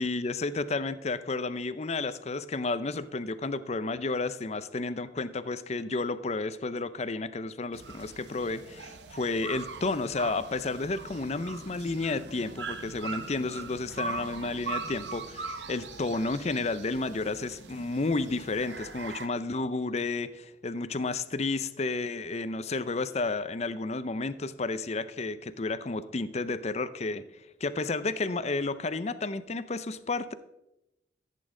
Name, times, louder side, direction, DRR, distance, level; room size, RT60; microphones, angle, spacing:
voice 1, 0.0-27.2 27.6-30.3, left 3 dB, 40° left, 13 dB, 0.6 m, -31 dB
sound 1, 7.7-19.3, right 4 dB, 85° right, 0.9 m, -41 dB
14.5 x 8.4 x 3.8 m, 0.90 s
head